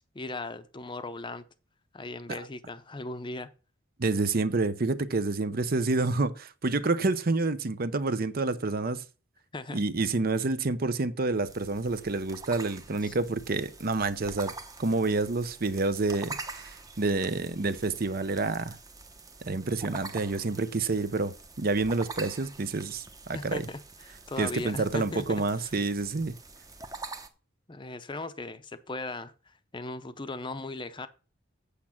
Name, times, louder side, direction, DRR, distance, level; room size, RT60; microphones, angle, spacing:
voice 1, 0.1-1.4 1.9-3.5 9.5-9.8 13.0-13.2 23.3-25.7 27.7-31.1, left 2 dB, 25° left, 0.6 m, -38 dB
voice 2, 4.0-9.0 9.7-14.5 14.8-18.8 19.4-23.6 24.4-26.3, right 3 dB, 50° right, 0.7 m, -28 dB
sound 1, 11.4-27.3, right 3 dB, 15° right, 0.9 m, -45 dB
8.4 x 7.3 x 5.8 m
head